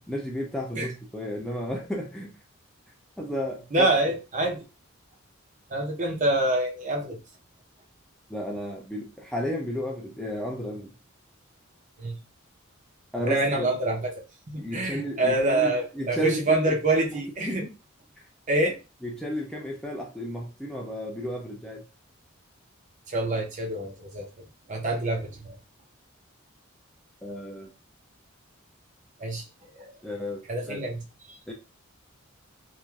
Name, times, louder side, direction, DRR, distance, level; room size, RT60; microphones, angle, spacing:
voice 1, 0.1-2.3 3.2-3.9 8.3-10.9 13.1-13.7 14.6-17.7 19.0-21.8 27.2-27.7 30.0-30.8 31.5-31.6, equal, 5° left, -1 dB, 0.4 m, -33 dB
voice 2, 3.7-4.6 5.7-7.2 12.0-12.1 13.2-14.1 14.5-17.6 18.5-18.8 23.1-24.3 24.7-25.6 29.2-29.4 29.7-30.0 30.5-31.0 31.3-31.4, right 2 dB, 35° right, 2 dB, 0.6 m, -26 dB
3.1 x 2.5 x 2.3 m, 0.29 s
head